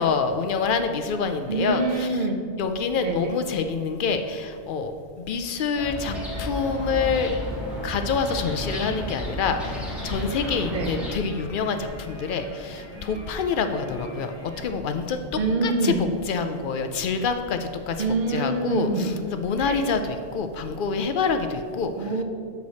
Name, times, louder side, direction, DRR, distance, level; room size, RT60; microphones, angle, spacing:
voice 1, 0.0-2.1 2.6-7.4 7.8-15.9 16.3-18.0 18.3-22.1, left 5 dB, 60° left, 7 dB, 0.6 m, -27 dB
voice 2, 1.5-2.4 3.0-3.4 10.7-11.0 15.4-16.0 18.0-19.2 19.6-19.8 21.8-22.2, right 3 dB, 45° right, 4 dB, 0.8 m, -26 dB
sound 1, 5.7-11.2, equal, ahead, 1.8 m, -32 dB
sound 2, 6.6-14.7, right 1 dB, 40° left, 1.9 m, -45 dB
8.1 x 4.8 x 4.1 m, 2.2 s
omnidirectional pair, 1.2 m